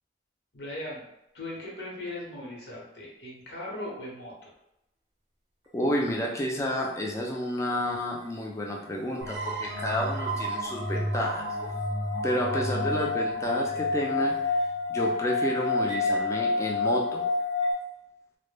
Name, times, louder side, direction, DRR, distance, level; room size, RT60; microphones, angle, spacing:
voice 1, 0.5-1.0 1.3-4.5, left 1 dB, 70° left, -3 dB, 0.8 m, -38 dB
voice 2, 5.7-11.5 12.2-14.6 14.9-17.2, equal, 15° left, -1 dB, 0.3 m, -30 dB
sound 1, 9.2-14.7, right 2 dB, 75° right, 0.5 m, -34 dB
sound 2, 9.3-17.7, left 3 dB, 25° right, 0.6 m, -29 dB
2.1 x 2.0 x 3.1 m, 0.85 s
head